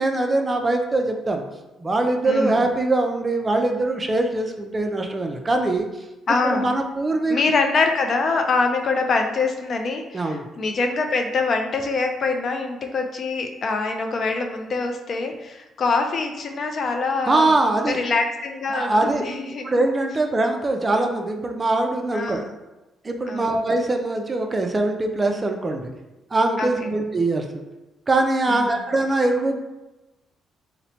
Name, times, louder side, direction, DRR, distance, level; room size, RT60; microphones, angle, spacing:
voice 1, 0.0-1.4 1.8-5.9 6.4-7.4 10.1-10.5 17.3-18.0 18.7-19.2 19.6-22.4 23.0-25.9 26.3-27.4 28.1-29.6, right 2 dB, 25° right, 4 dB, 0.3 m, -22 dB
voice 2, 2.3-2.7 6.3-6.8 7.3-17.5 17.9-19.7 22.1-22.5 23.3-23.5 26.6-26.9 28.5-28.7, left 3 dB, 50° left, 4 dB, 0.3 m, -24 dB
2.9 x 2.1 x 2.7 m, 1.0 s
cardioid pair, 90°, 0 cm